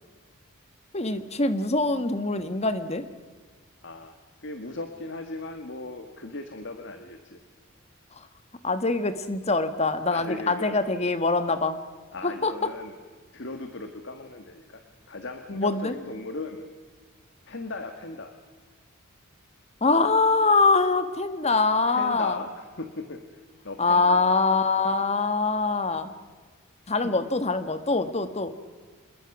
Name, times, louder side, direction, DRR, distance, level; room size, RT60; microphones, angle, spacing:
voice 1, 0.9-3.0 8.6-11.8 12.2-12.7 15.6-15.9 19.8-22.4 23.8-26.1 26.9-28.5, left 3 dB, 30° left, 11 dB, 1.4 m, -24 dB
voice 2, 3.8-4.1 4.4-7.4 10.1-10.8 12.1-13.0 13.3-16.6 17.4-18.3 21.9-23.2 23.6-24.3 27.0-27.1, left 2 dB, 55° left, 7 dB, 1.6 m, -37 dB
27.0 x 21.5 x 6.1 m, 1.5 s
head